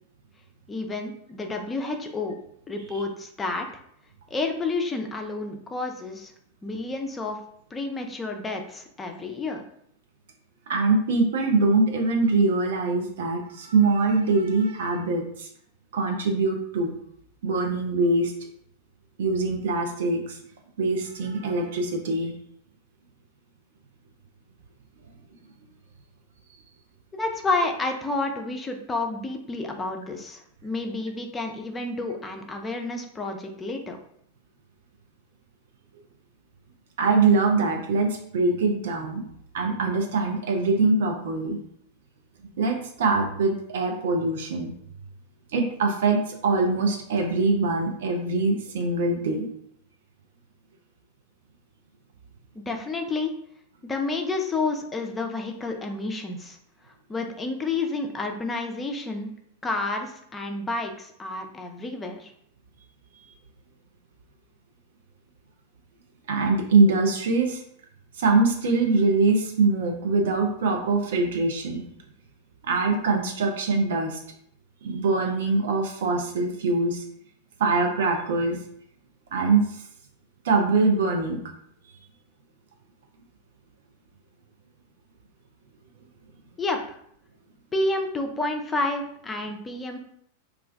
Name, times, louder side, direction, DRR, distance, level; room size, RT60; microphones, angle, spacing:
voice 1, 0.7-2.3 2.7-3.7 4.3-6.3 6.6-7.4 7.7-9.6 27.1-34.0 52.5-53.3 53.9-56.6 57.1-59.3 59.6-62.3 86.6-86.8 87.7-90.0, left 3 dB, 15° left, 3 dB, 0.4 m, -30 dB
voice 2, 10.7-15.5 15.9-16.9 17.4-18.3 19.2-20.4 20.8-22.3 37.0-39.2 39.5-41.6 42.6-44.7 45.5-49.5 66.3-67.6 68.2-71.8 72.6-74.2 74.8-77.0 77.6-78.6 79.3-79.7 80.4-81.4, right 3 dB, 60° right, 2 dB, 0.4 m, -23 dB
2.4 x 2.1 x 3.3 m, 0.68 s
figure-of-eight pair, 90°, 0 cm